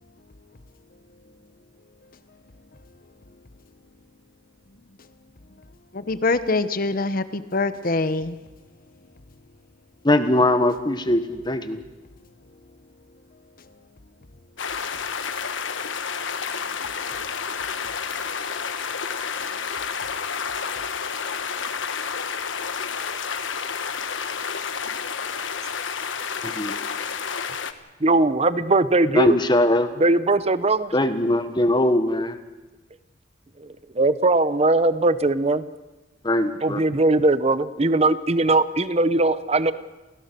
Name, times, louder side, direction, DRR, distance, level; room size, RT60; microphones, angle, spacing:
voice 1, 5.9-8.4 13.6-13.7 16.5-16.6 18.3-19.7, left 3 dB, 50° left, 12 dB, 1.0 m, -27 dB
voice 2, 10.0-11.8 26.4-26.7 29.1-29.9 30.9-32.4 36.2-36.8, left 1 dB, 25° left, 9 dB, 1.3 m, -21 dB
sound 1, 14.6-27.7, left 6 dB, 85° left, 1.2 m, -30 dB
voice 3, 28.0-29.4 30.0-30.9 33.6-33.7 33.9-35.7 36.6-39.7, right 2 dB, 35° right, 14 dB, 0.7 m, -20 dB
28.5 x 16.5 x 6.8 m, 1.1 s
head